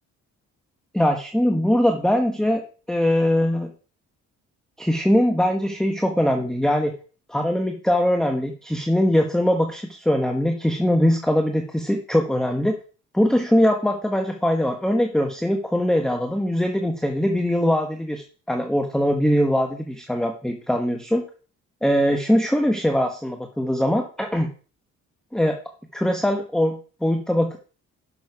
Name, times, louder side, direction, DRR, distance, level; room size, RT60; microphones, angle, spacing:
voice 1, 0.9-3.7 4.8-7.0 7.3-12.8 13.1-21.2 21.8-24.5 25.3-25.6 25.9-27.6, equal, ahead, 4 dB, 1.1 m, -21 dB
12.0 x 6.4 x 4.8 m, 0.40 s
cardioid pair, 90°, 30 cm